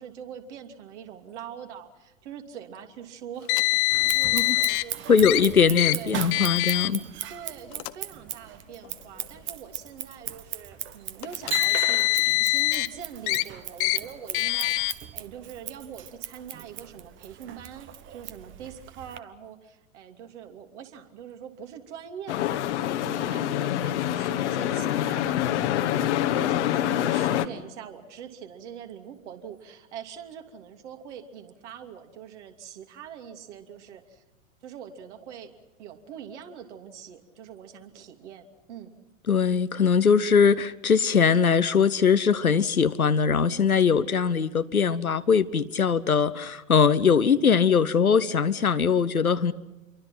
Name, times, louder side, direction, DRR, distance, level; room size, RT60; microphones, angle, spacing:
voice 1, 0.0-5.4 5.9-6.2 7.3-22.6 23.0-34.2 34.6-35.5 35.8-39.0, right 8 dB, 55° right, 2.9 m, -43 dB
Car, 3.5-4.8 5.2-5.4 5.8-5.9 6.3-6.9 7.7-7.9 8.9-9.0 11.2-12.9 13.3-13.4 13.8-14.0 14.3-14.9, left 23 dB, 40° left, 0.9 m, -24 dB
Scissors, 3.9-19.2, right 12 dB, 30° right, 1.1 m, -38 dB
voice 2, 5.1-7.0 39.3-49.5, left 6 dB, 85° left, 1.1 m, -21 dB
sound 1, 22.3-27.5, left 12 dB, 55° left, 1.5 m, -26 dB
28.0 x 23.5 x 5.9 m
figure-of-eight pair, 95°, 42 cm